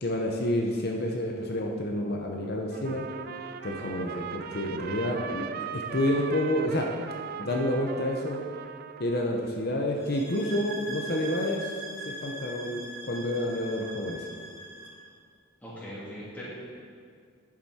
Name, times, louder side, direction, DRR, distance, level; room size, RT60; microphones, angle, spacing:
voice 1, 0.0-3.1 3.6-5.5 5.7-6.9 7.4-8.4 9.0-11.7 12.0-14.3, left 1 dB, 45° left, 1 dB, 0.7 m, -29 dB
Trumpet, 2.7-9.5, right 7 dB, 45° right, 0.3 m, -39 dB
sound 1, 10.0-15.0, right 1 dB, 70° right, 2.1 m, -41 dB
voice 2, 15.6-16.4, equal, 10° left, -10 dB, 2.8 m, -40 dB
10.5 x 7.5 x 4.3 m, 2.1 s
head